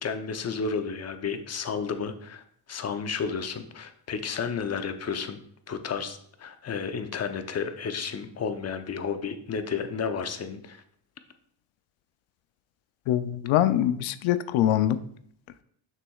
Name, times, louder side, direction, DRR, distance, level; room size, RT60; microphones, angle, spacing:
voice 1, 0.0-5.4 5.7-10.8, left 6 dB, 35° left, 8 dB, 0.7 m, -32 dB
voice 2, 13.1-15.0, left 12 dB, 80° left, 13 dB, 0.6 m, -23 dB
6.7 x 6.1 x 2.4 m, 0.66 s
cardioid pair, 100°, 46 cm